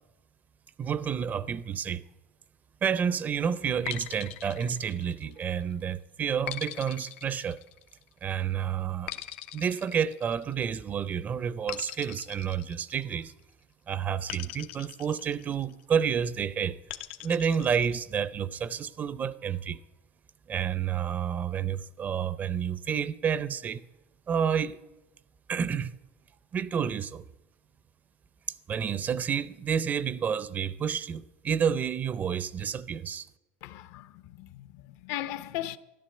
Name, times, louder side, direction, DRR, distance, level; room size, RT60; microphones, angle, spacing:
voice 1, 0.8-2.0 2.8-7.6 8.2-9.1 9.5-13.3 13.9-16.8 17.2-19.8 20.5-23.8 24.3-24.8 25.5-25.9 26.5-27.2 28.7-33.3, right 7 dB, 25° right, 0.5 m, -30 dB
sound 1, 3.9-5.5 6.5-8.1 9.1-10.8 11.7-13.4 14.3-15.8 16.9-18.0, left 14 dB, 85° left, 1.0 m, -41 dB
voice 2, 33.6-35.8, left 13 dB, 60° left, 0.8 m, -37 dB
13.0 x 12.0 x 7.7 m
cardioid pair, 150°, 6 cm